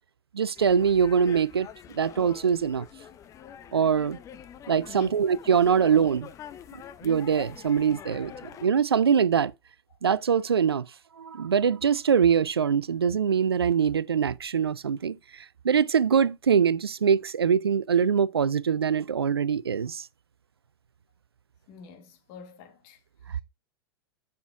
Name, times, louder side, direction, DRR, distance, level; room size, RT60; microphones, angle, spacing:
voice 1, 0.3-1.7 1.9-2.9 3.7-4.2 4.7-6.3 7.0-8.3 8.6-9.5 10.0-10.9 11.2-20.1, right 7 dB, 80° right, 0.4 m, -23 dB
sound 1, 0.6-8.7, left 9 dB, 25° left, 0.6 m, -45 dB
voice 2, 4.8-5.2 9.9-10.0 21.7-23.4, left 5 dB, 45° left, 1.5 m, -48 dB
7.1 x 5.9 x 3.4 m
figure-of-eight pair, 95°, 13 cm